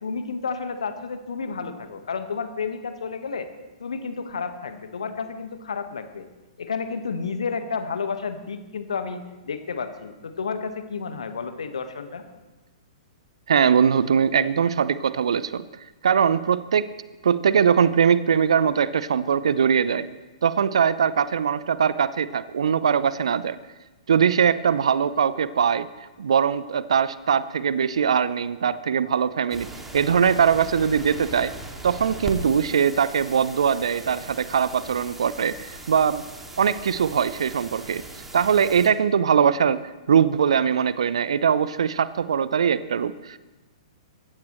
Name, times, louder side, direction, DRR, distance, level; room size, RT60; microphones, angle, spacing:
voice 1, 0.0-3.5 3.8-6.3 6.6-12.2, left 5 dB, 70° left, 8 dB, 1.5 m, -31 dB
voice 2, 13.5-15.6 16.0-16.9 17.2-20.1 20.4-23.6 24.1-25.9 26.2-29.7 29.9-31.5 31.8-36.2 36.6-38.0 38.3-39.8 40.1-43.4, right 7 dB, 65° right, 16 dB, 0.7 m, -21 dB
sound 1, 29.5-38.9, right 2 dB, 10° right, 2.4 m, -39 dB
23.0 x 15.5 x 3.2 m, 1.2 s
figure-of-eight pair, 115°, 3 cm